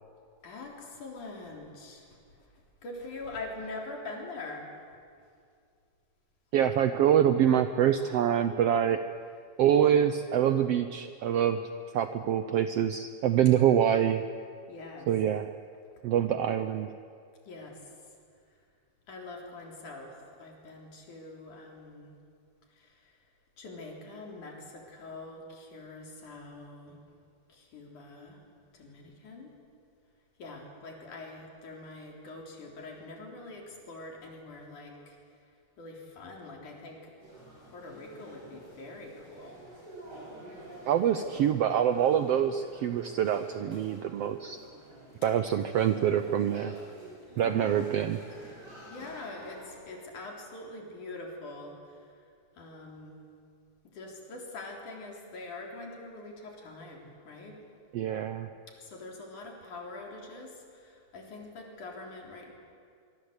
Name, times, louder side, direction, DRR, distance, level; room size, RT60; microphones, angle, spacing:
voice 1, 0.4-2.2 2.8-4.7 14.7-15.1 17.5-17.8 19.1-22.1 22.7-23.1 23.6-27.0 27.5-28.4 28.7-29.5 30.4-35.2 35.8-37.1 37.6-39.6 47.4-48.0 48.9-52.1 52.6-53.2 53.8-57.6 58.8-62.5, left 2 dB, 75° left, 0 dB, 5.2 m, -44 dB
voice 2, 6.5-9.0 9.6-11.6 11.9-14.2 15.1-15.5 16.0-16.9 40.9-44.6 45.2-46.7 47.4-48.2 57.9-58.5, right 9 dB, 75° right, 10 dB, 1.4 m, -25 dB
sound 1, 37.2-49.7, right 1 dB, 30° right, 8.1 m, -49 dB
24.5 x 23.5 x 8.2 m, 2.3 s
omnidirectional pair, 3.6 m